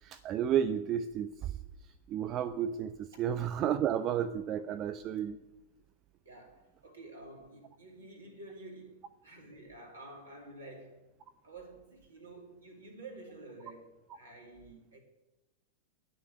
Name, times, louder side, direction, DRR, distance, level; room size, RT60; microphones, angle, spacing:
voice 1, 0.0-1.5 2.1-5.4, right 9 dB, 35° right, 12 dB, 0.4 m, -32 dB
voice 2, 6.2-11.0 11.4-15.0, right 2 dB, 75° right, 1 dB, 2.3 m, -50 dB
9.3 x 6.5 x 7.6 m, 1.0 s
figure-of-eight pair, 90°, 0 cm